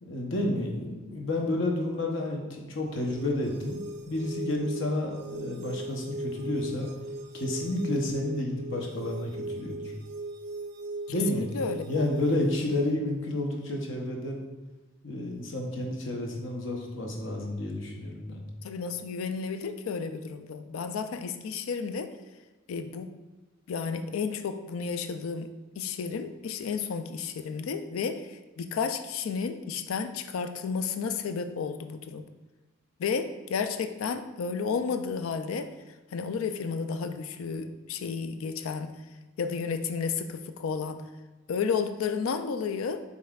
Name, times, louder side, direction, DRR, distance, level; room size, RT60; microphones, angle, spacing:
voice 1, 0.0-3.8 4.1-6.9 7.3-9.9 11.1-11.5 11.9-14.4 15.0-18.4, left 1 dB, 60° left, 1 dB, 0.7 m, -30 dB
sound 1, 2.9-12.9, right 1 dB, 50° right, 0.4 m, -38 dB
voice 2, 11.3-12.0 18.6-22.1 22.7-23.1 23.7-32.2 33.0-35.7 36.1-38.9 39.4-41.0 41.5-43.0, left 5 dB, 75° left, 9 dB, 0.4 m, -32 dB
5.4 x 3.5 x 2.3 m, 1.2 s
head